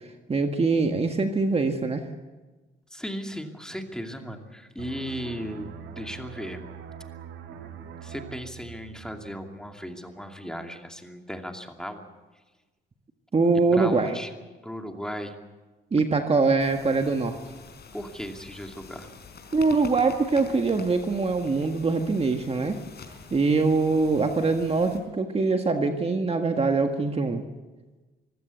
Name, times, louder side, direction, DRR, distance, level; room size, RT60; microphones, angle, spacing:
voice 1, 0.3-2.0 13.3-14.2 15.9-17.4 19.5-22.8 23.3-27.4, right 3 dB, 30° right, 5 dB, 1.7 m, -23 dB
voice 2, 2.9-6.6 7.5-12.0 13.7-14.3 14.6-15.4 17.9-19.1, equal, 5° left, 4 dB, 2.6 m, -36 dB
sound 1, 4.8-10.2 10.5-10.7, right 8 dB, 85° right, 1.8 m, -43 dB
sound 2, 16.6-25.0, left 5 dB, 55° left, 4.8 m, -46 dB
24.5 x 15.5 x 8.3 m, 1.2 s
cardioid pair, 90°, 20 cm